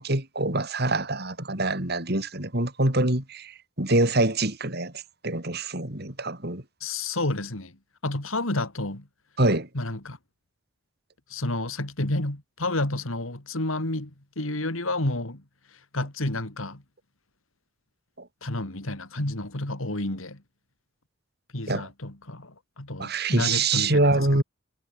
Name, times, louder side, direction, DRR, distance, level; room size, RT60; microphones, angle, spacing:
voice 1, 0.0-4.9 5.2-6.6 9.4-9.7 18.2-18.3 21.7-21.9 23.0-24.4, right 2 dB, 50° right, 4.3 m, -25 dB
voice 2, 6.8-7.7 8.0-9.0 9.7-10.2 11.3-14.1 14.4-15.4 15.9-16.8 18.4-20.4 21.5-24.4, left 2 dB, 80° left, 3.2 m, -30 dB
head